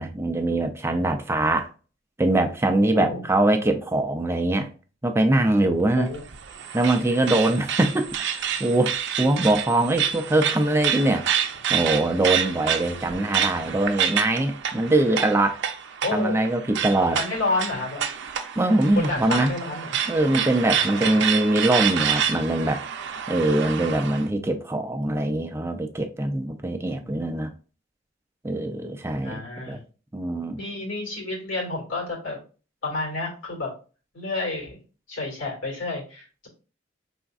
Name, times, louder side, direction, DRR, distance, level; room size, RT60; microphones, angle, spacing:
voice 1, 0.0-1.7 2.2-4.7 5.0-6.1 6.7-11.3 11.7-15.6 16.1-17.2 18.6-19.5 20.1-22.8 23.3-27.5 28.4-29.8 30.1-30.6, right 2 dB, 15° right, 0.4 m, -23 dB
sound 1, 6.1-24.2, right 8 dB, 65° right, 0.5 m, -28 dB
voice 2, 16.0-16.5 17.1-18.1 18.9-20.0 20.8-21.2 27.1-27.2 29.2-29.8 30.6-32.4 32.8-33.7 34.1-34.8 35.1-36.5, left 2 dB, 75° left, 2.1 m, -30 dB
4.9 x 3.5 x 2.4 m
head